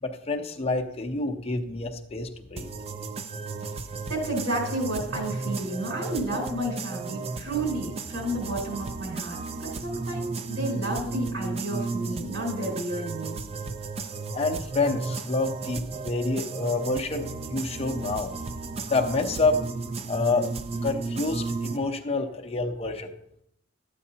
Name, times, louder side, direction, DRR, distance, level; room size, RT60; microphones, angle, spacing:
voice 1, 0.0-2.7 14.3-20.5 20.8-23.1, left 3 dB, 30° left, 2 dB, 0.6 m, -28 dB
sound 1, 2.6-21.8, right 3 dB, 30° right, 0.5 m, -34 dB
voice 2, 4.1-13.4, right 1 dB, 75° right, -1 dB, 4.1 m, -31 dB
12.0 x 8.3 x 2.8 m, 0.75 s
head